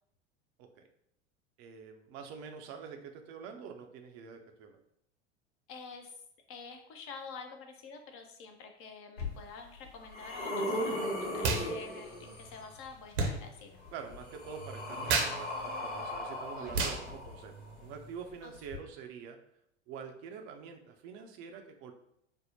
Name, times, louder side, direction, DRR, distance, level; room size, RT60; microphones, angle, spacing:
voice 1, 1.6-4.8 13.9-19.4 19.9-21.9, right 6 dB, 40° right, 5 dB, 0.5 m, -46 dB
voice 2, 5.7-6.1 6.5-13.8 16.6-16.9 18.4-18.5, left 5 dB, 40° left, 5 dB, 0.6 m, -48 dB
sound 1, 9.2-9.3 9.8-12.6 13.8-17.7 18.7-18.8, left 1 dB, 80° left, 1.0 m, -37 dB
sound 2, 11.4-11.7 11.9-18.1, right 4 dB, 65° right, 0.8 m, -36 dB
5.1 x 2.0 x 2.8 m, 0.73 s
figure-of-eight pair, 85°, 35 cm